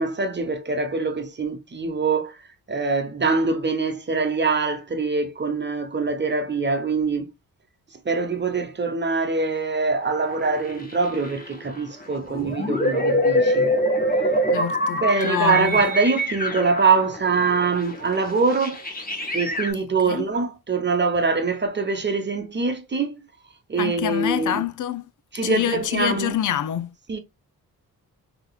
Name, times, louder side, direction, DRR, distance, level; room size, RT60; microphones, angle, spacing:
voice 1, 0.0-7.3 7.9-13.7 15.0-18.9 19.3-23.3 23.7-24.6 25.3-26.4 27.1-27.2, right 4 dB, 30° right, 0.9 m, -24 dB
sound 1, 10.0-11.7 12.0-19.7, equal, 25° left, 1.2 m, -25 dB
voice 2, 14.5-15.8 20.1-20.3 23.8-25.1 25.4-26.9, left 11 dB, 55° left, 0.5 m, -26 dB
3.7 x 2.9 x 2.3 m
supercardioid pair, 50°, 37 cm